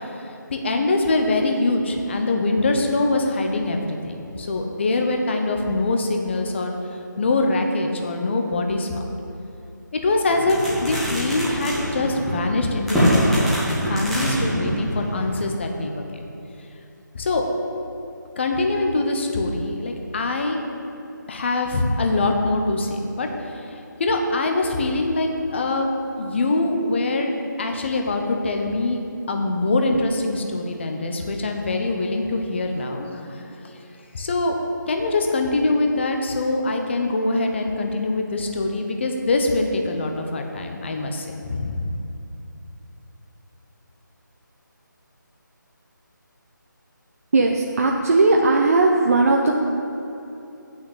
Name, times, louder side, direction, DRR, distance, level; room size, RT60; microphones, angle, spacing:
voice 1, 0.0-6.7 7.2-9.0 10.0-16.2 17.1-17.5 18.4-20.6 21.3-25.9 26.2-29.0 29.3-33.4 33.7-33.8 34.1-34.6 34.9-41.9, left 2 dB, 35° left, 3 dB, 1.0 m, -24 dB
sound 1, 10.3-15.4, equal, ahead, 1.3 m, -24 dB
voice 2, 47.3-49.5, right 3 dB, 45° right, 0 dB, 0.7 m, -18 dB
8.6 x 6.3 x 7.3 m, 2.9 s
figure-of-eight pair, 160°, 11 cm